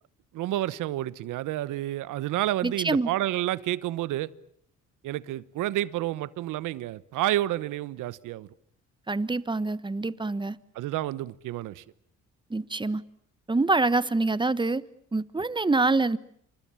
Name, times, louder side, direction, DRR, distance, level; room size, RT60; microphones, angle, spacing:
voice 1, 0.3-4.3 5.0-8.5 10.7-11.8, right 14 dB, 90° right, 1.1 m, -30 dB
voice 2, 2.6-3.1 9.1-10.6 12.5-13.0 13.5-14.8 15.1-16.2, right 3 dB, 15° right, 1.2 m, -25 dB
28.5 x 26.0 x 7.1 m
cardioid pair, 90°, 30 cm